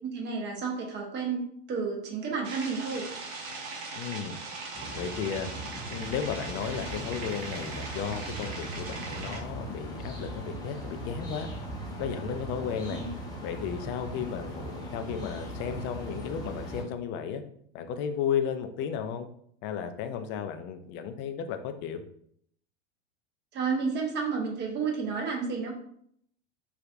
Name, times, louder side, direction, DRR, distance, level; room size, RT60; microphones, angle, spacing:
voice 1, 0.0-3.1 13.0-13.1 23.5-25.7, right 5 dB, 30° right, 1 dB, 0.9 m, -31 dB
sound 1, 2.4-9.4, right 3 dB, 55° right, 0.9 m, -40 dB
voice 2, 3.9-4.4 4.9-5.5 5.9-11.5 12.0-13.0 13.4-17.4 17.7-19.3 19.6-22.0, left 8 dB, 35° left, 8 dB, 0.4 m, -34 dB
sound 2, 4.7-16.8, right 1 dB, 10° left, 0.8 m, -39 dB
4.5 x 2.4 x 2.5 m, 0.67 s
hypercardioid pair, 95°, 35 cm